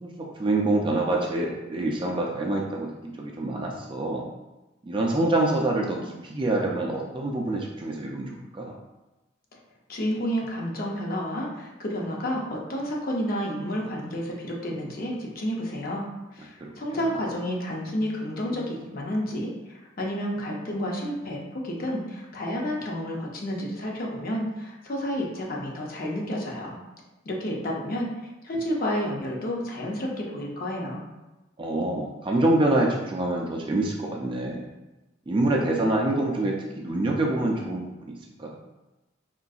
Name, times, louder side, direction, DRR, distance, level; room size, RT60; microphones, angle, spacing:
voice 1, 0.0-4.2 4.8-8.8 16.6-16.7 31.6-34.7 35.3-38.6, right 2 dB, 25° right, -1 dB, 0.3 m, -26 dB
voice 2, 9.9-16.1 16.3-26.8 27.2-28.1 28.4-31.0, equal, 45° left, -1 dB, 0.6 m, -30 dB
3.7 x 2.5 x 2.3 m, 1.1 s
head